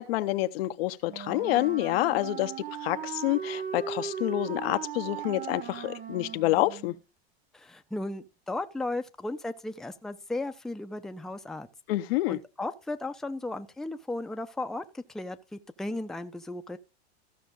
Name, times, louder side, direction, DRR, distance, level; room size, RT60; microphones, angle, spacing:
voice 1, 0.0-2.5 2.8-7.0 11.9-12.4, left 17 dB, 65° left, 0.7 m, -28 dB
Wind instrument woodwind instrument, 1.0-7.0, right 8 dB, 25° right, 1.2 m, -38 dB
voice 2, 7.5-11.7 12.3-16.8, left 2 dB, ahead, 0.6 m, -35 dB
14.5 x 6.1 x 3.8 m
hypercardioid pair, 105°, 33 cm